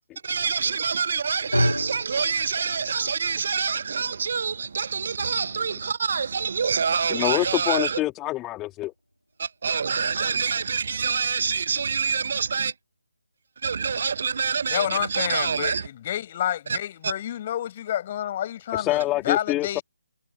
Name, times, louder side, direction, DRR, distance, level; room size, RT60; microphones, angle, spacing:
voice 1, 0.2-8.0 9.4-12.7 13.6-15.9 16.7-16.8 17.0-17.1, right 6 dB, 45° right, 1.1 m, -26 dB
sound 1, 1.5-9.8, equal, 90° left, 4.1 m, -34 dB
voice 2, 7.1-8.9 18.7-19.8, left 17 dB, 15° left, 2.5 m, -26 dB
voice 3, 14.7-19.8, left 11 dB, 30° left, 6.3 m, -29 dB
figure-of-eight pair, 145°, 0 cm